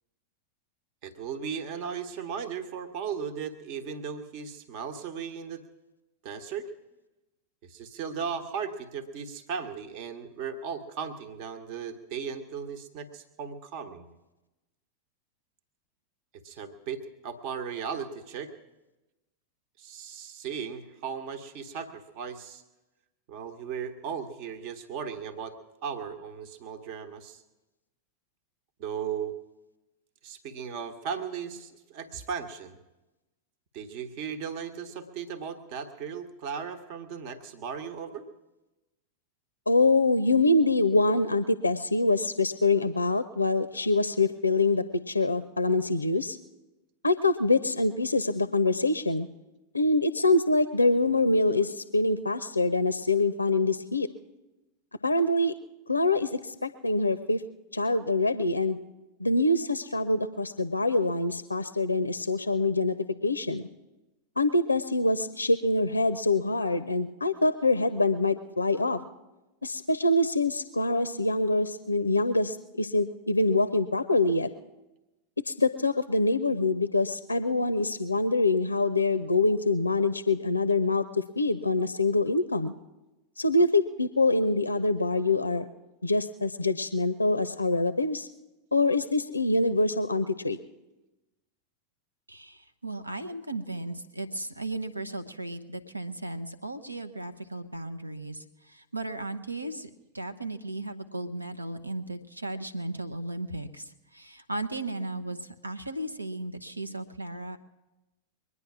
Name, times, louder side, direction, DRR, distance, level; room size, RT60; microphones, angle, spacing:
voice 1, 1.0-5.6 6.2-6.7 7.6-14.1 16.3-18.5 19.8-22.6 23.3-25.6 25.8-27.4 28.8-29.3 30.2-32.8 33.7-38.3, right 7 dB, 45° right, 8 dB, 1.1 m, -36 dB
voice 2, 39.7-46.4 47.0-49.3 49.7-54.1 55.0-55.5 55.9-57.4 57.7-58.8 59.2-63.0 63.2-63.6 64.4-69.0 69.6-74.5 75.5-81.0 81.4-82.7 83.4-85.7 86.0-88.3 88.7-90.6, left 2 dB, 80° left, 13 dB, 0.5 m, -25 dB
voice 3, 92.3-107.6, right 2 dB, 85° right, 9 dB, 0.9 m, -36 dB
22.5 x 9.8 x 6.0 m, 1.0 s
figure-of-eight pair, 90°, 0 cm